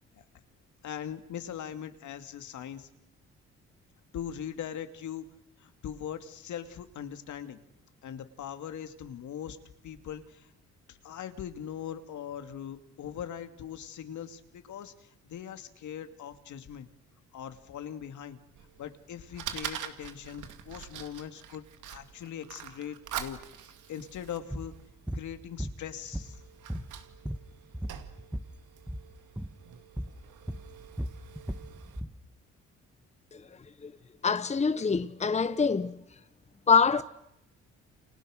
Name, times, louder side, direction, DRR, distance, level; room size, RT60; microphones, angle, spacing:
voice 1, 0.8-2.9 4.1-5.3 5.6-7.6 8.0-9.6 9.8-10.5 10.9-16.9 17.3-18.4 18.8-21.6 21.9-23.4 23.9-24.7 25.1-26.4, left 9 dB, 75° left, 2.6 m, -40 dB
Fire, 18.6-32.0, right 10 dB, 85° right, 2.4 m, -45 dB
sound 1, 24.5-24.7 25.1-25.3 25.6-26.4 26.7-28.5 28.8-29.1 29.4-29.6 30.0-30.2 30.5-32.2, equal, 5° right, 1.5 m, -36 dB
voice 2, 34.2-36.0 36.7-37.0, left 5 dB, 20° left, 1.1 m, -25 dB
29.5 x 29.5 x 6.6 m
cardioid pair, 90°, 30 cm